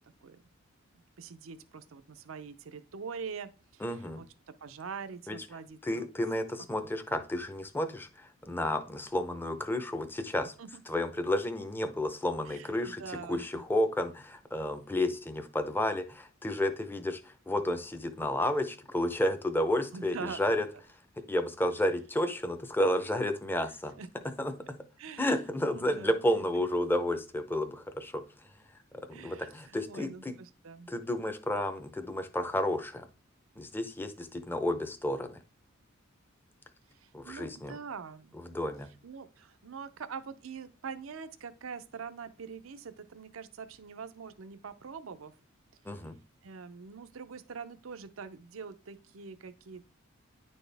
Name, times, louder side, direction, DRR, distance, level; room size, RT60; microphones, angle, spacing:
voice 1, 1.2-3.8 4.2-6.1 6.8-7.2 10.6-10.8 12.5-13.5 19.9-20.6 21.8-21.9 24.0-24.1 25.0-25.3 25.6-26.2 29.1-30.9 36.9-38.3 39.0-45.3 46.4-49.9, right 5 dB, 70° right, 0.5 m, -44 dB
voice 2, 3.8-4.2 5.3-5.4 5.8-10.5 10.9-20.7 21.3-24.0 24.2-24.8 25.2-28.2 28.9-30.4 30.9-33.1 33.6-35.4 37.1-37.8 38.5-38.9 45.8-46.2, left 1 dB, 10° left, 0.6 m, -31 dB
9.9 x 4.2 x 3.4 m
head